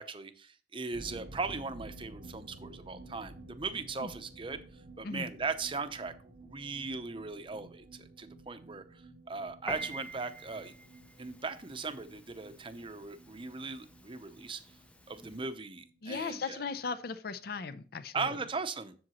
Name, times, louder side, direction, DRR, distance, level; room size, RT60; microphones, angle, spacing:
voice 1, 0.0-4.6 5.0-6.1 6.4-9.0 9.3-10.7 11.2-14.6 15.1-16.6 18.1-18.9, right 4 dB, 30° right, 0.6 m, -38 dB
sound 1, 0.9-16.3 16.6-16.7 17.0-17.1, right 2 dB, 70° right, 1.0 m, -53 dB
Piano, 9.7-15.5, right 1 dB, 5° left, 0.4 m, -48 dB
voice 2, 16.0-18.3, left 4 dB, 60° left, 0.5 m, -37 dB
7.6 x 7.2 x 3.0 m
head